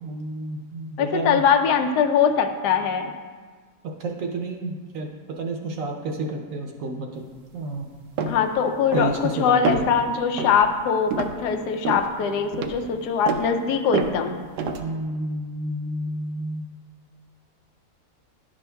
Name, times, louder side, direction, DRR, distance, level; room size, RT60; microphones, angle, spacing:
voice 1, 0.0-1.4 4.0-5.1 5.4-7.2 7.5-7.9 8.9-9.9 14.8-16.7, right 2 dB, 65° right, 2 dB, 1.0 m, -30 dB
voice 2, 1.0-3.1 8.3-14.5, left 6 dB, 80° left, 6 dB, 1.2 m, -22 dB
sound 1, 8.2-8.4 8.9-9.3 9.6-10.0 10.4-10.6 11.1-11.4 11.8-12.1 12.5-12.8 13.3-13.5 13.9-14.2 14.6-14.8, right 5 dB, 90° right, 1.2 m, -27 dB
11.0 x 6.1 x 2.2 m, 1.5 s
omnidirectional pair, 1.7 m